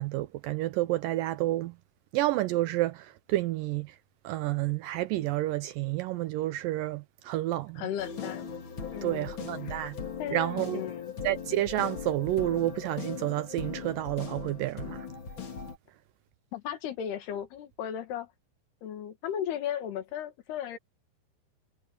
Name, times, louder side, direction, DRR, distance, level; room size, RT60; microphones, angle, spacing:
voice 1, 0.0-1.7 2.1-4.0 4.2-7.8 9.0-10.0 10.3-10.8 11.2-15.1, right 16 dB, 80° right, 2.0 m, -30 dB
voice 2, 7.8-8.5 8.9-9.3 9.7-9.9 10.2-11.1 16.5-18.3 18.8-20.8, left 10 dB, 85° left, 4.0 m, -36 dB
sound 1, 8.0-15.8, left 6 dB, 40° left, 2.1 m, -39 dB
omnidirectional pair, 4.5 m